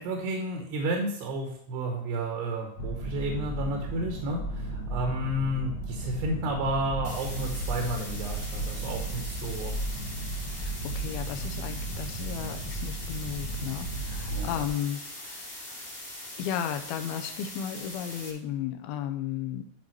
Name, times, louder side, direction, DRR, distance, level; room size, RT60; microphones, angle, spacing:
voice 1, 0.0-9.7 14.3-14.6, right 1 dB, 80° right, 1 dB, 3.3 m, -31 dB
sound 1, 2.8-14.7, right 2 dB, 60° left, 2.2 m, -35 dB
sound 2, 7.0-18.3, left 1 dB, 20° left, 1.6 m, -42 dB
voice 2, 10.5-15.9 16.4-19.6, left 9 dB, 80° left, 7 dB, 2.4 m, -35 dB
11.0 x 4.9 x 4.6 m, 0.67 s
omnidirectional pair, 4.8 m